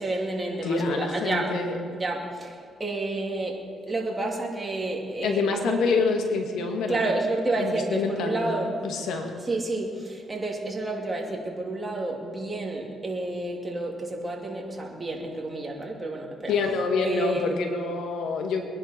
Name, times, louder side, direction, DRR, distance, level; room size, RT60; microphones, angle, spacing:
voice 1, 0.0-1.5 1.9-5.9 6.9-8.8 9.5-16.5 17.0-17.5, right 2 dB, 20° right, -1 dB, 2.8 m, -30 dB
voice 2, 0.6-1.8 5.2-7.1 7.6-8.6 8.8-9.3 16.5-18.6, left 4 dB, 80° left, 3 dB, 2.0 m, -26 dB
22.5 x 11.0 x 4.5 m, 2.1 s
cardioid pair, 90°, 0 cm